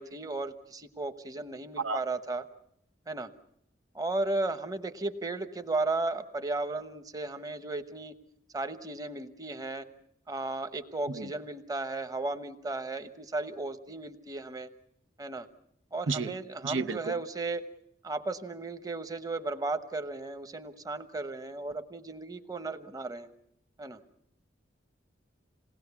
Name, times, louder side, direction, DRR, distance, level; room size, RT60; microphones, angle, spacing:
voice 1, 0.0-2.5 3.1-3.3 3.9-8.2 8.5-9.9 10.3-14.7 15.2-15.5 15.9-17.7 18.0-23.3 23.8-24.0, right 2 dB, 20° right, 9 dB, 1.0 m, -35 dB
voice 2, 16.6-17.2, right 4 dB, 85° right, 10 dB, 0.8 m, -31 dB
27.5 x 19.0 x 7.1 m, 0.74 s
head